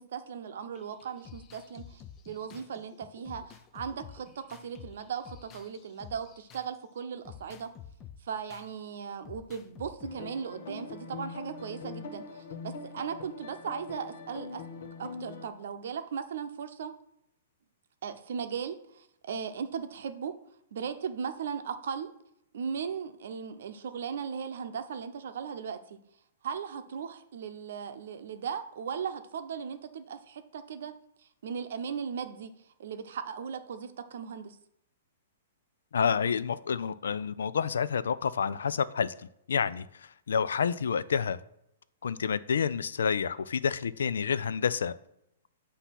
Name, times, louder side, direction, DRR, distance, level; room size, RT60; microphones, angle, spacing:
voice 1, 0.0-7.7 8.2-14.6 15.0-16.9 18.0-20.4 20.7-22.1 22.5-26.0 26.4-30.9 31.2-34.6, right 7 dB, 70° right, 9 dB, 0.7 m, -37 dB
sound 1, 0.7-6.8 7.2-8.7 9.2-10.1, left 8 dB, 20° left, 0.5 m, -50 dB
sound 2, 10.0-15.5, left 4 dB, 60° left, 1.1 m, -42 dB
voice 2, 35.9-39.1 39.5-39.9 40.3-41.4 42.0-45.0, left 6 dB, 90° left, 15 dB, 0.4 m, -28 dB
8.1 x 2.8 x 5.8 m, 0.79 s
hypercardioid pair, 150°, 0 cm